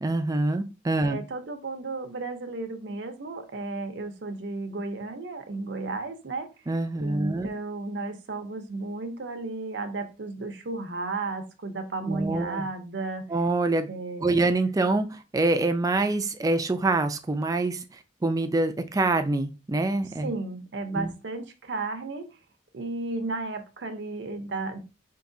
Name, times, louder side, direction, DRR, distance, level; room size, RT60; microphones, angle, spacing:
voice 1, 0.0-1.2 6.7-7.5 12.1-12.7 13.3-13.9 14.2-15.1 15.3-17.8 18.2-20.3 20.9-21.1, right 2 dB, 20° right, 8 dB, 0.4 m, -25 dB
voice 2, 1.0-6.5 7.0-13.2 13.9-14.3 20.2-22.3 22.7-24.8, right 3 dB, 80° right, 7 dB, 0.7 m, -33 dB
4.7 x 2.8 x 2.6 m, 0.30 s
head